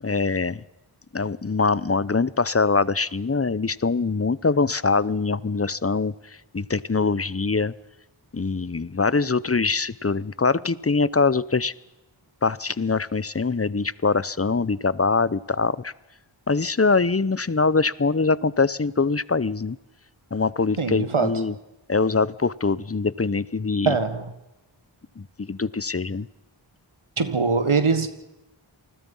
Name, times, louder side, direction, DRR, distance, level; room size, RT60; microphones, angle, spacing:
voice 1, 0.0-0.6 1.1-6.1 6.5-7.7 8.3-11.7 12.4-15.9 16.5-19.8 20.3-21.6 21.9-24.0 25.2-26.3, left 4 dB, 30° left, 20 dB, 0.7 m, -23 dB
voice 2, 20.8-21.4 23.8-24.3 27.2-28.1, right 4 dB, 85° right, 10 dB, 1.6 m, -22 dB
28.0 x 20.5 x 5.5 m, 0.99 s
wide cardioid pair, 40°, 48 cm